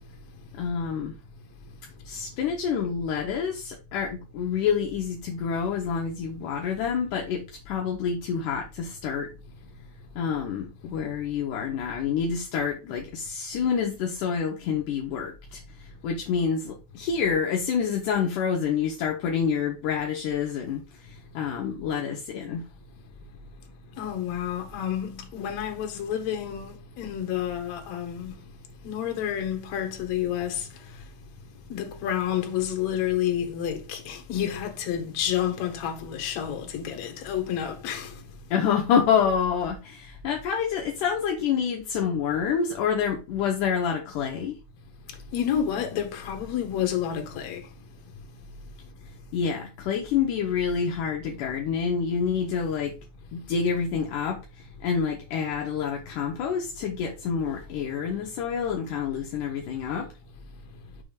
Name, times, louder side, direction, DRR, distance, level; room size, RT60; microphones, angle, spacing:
voice 1, 0.6-1.2 2.1-9.3 10.2-22.7 38.5-44.6 49.3-53.0 53.3-54.4 54.8-60.1, left 7 dB, 75° left, 1.9 m, -27 dB
voice 2, 24.0-28.4 28.8-31.1 31.7-38.2 45.1-47.7, left 10 dB, 60° left, 2.0 m, -30 dB
6.3 x 3.4 x 5.0 m
omnidirectional pair, 4.5 m